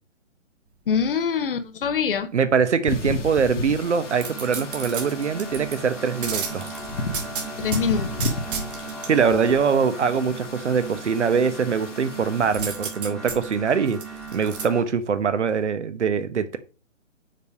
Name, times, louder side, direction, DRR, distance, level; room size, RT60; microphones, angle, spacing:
voice 1, 0.9-2.3 7.6-8.2, left 6 dB, 45° left, 0.9 m, -24 dB
voice 2, 2.3-6.7 9.1-14.0 14.3-16.6, right 6 dB, 60° right, 1.3 m, -23 dB
sound 1, 2.9-12.7, left 2 dB, 65° left, 1.6 m, -34 dB
sound 2, 3.8-14.9, right 4 dB, ahead, 1.6 m, -38 dB
sound 3, 4.2-5.8 6.2-7.8 8.2-9.1 12.5-14.6 15.1-15.2, right 5 dB, 40° right, 2.4 m, -32 dB
6.7 x 4.8 x 4.9 m
figure-of-eight pair, 140°, 39 cm